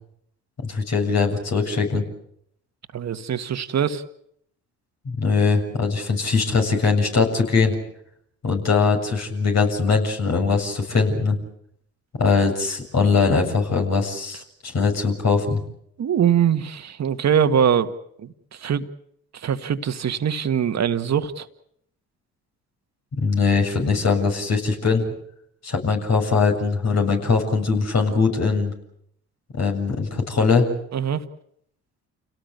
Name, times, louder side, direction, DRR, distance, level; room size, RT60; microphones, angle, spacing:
voice 1, 0.6-2.0 5.1-7.7 8.4-11.4 12.2-15.6 23.1-25.1 25.6-28.7 29.5-30.7, left 4 dB, 50° left, 3 dB, 7.4 m, -21 dB
voice 2, 2.9-4.0 16.0-17.9 18.2-18.8 19.3-21.5 30.9-31.2, right 8 dB, 50° right, 8 dB, 1.9 m, -22 dB
29.0 x 18.0 x 8.2 m, 0.73 s
hypercardioid pair, 60°, 33 cm